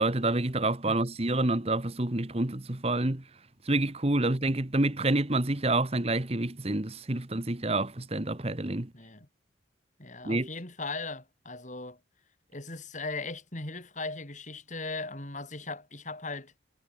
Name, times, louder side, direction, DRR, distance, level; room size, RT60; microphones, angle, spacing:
voice 1, 0.0-3.2 3.6-8.9 10.2-10.5, right 2 dB, 30° right, 1.3 m, -28 dB
voice 2, 8.9-9.3 10.0-12.0 12.5-16.5, left 3 dB, 40° left, 3.5 m, -38 dB
head